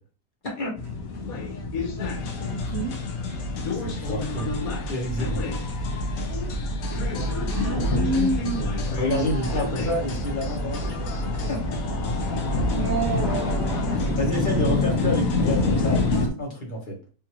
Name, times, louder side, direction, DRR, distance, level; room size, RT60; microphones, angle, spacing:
sound 1, 0.8-16.3, left 2 dB, 60° left, 1.2 m, -27 dB
sound 2, 2.0-16.3, left 2 dB, 80° left, 1.3 m, -38 dB
voice 1, 2.5-2.9 7.2-9.6 12.8-14.6, right 3 dB, 65° right, 0 dB, 0.7 m, -30 dB
voice 2, 3.8-4.6 4.9-5.6 9.0-11.1 11.5-11.6 14.2-17.0, left 1 dB, 30° left, -2 dB, 1.2 m, -29 dB
3.6 x 2.8 x 2.9 m, 0.38 s
omnidirectional pair, 1.8 m